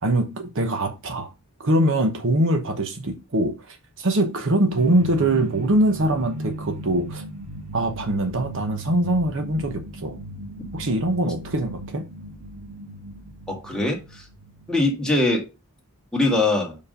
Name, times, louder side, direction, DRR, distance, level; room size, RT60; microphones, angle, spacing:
voice 1, 0.0-1.3 1.6-7.2 7.7-10.2 10.7-12.1, right 1 dB, 60° right, 1.0 m, -23 dB
sound 1, 4.8-14.9, right 1 dB, 85° right, 1.6 m, -37 dB
voice 2, 13.5-14.2 14.7-15.5 16.1-16.8, left 2 dB, 5° left, 1.7 m, -22 dB
5.3 x 4.7 x 5.1 m
head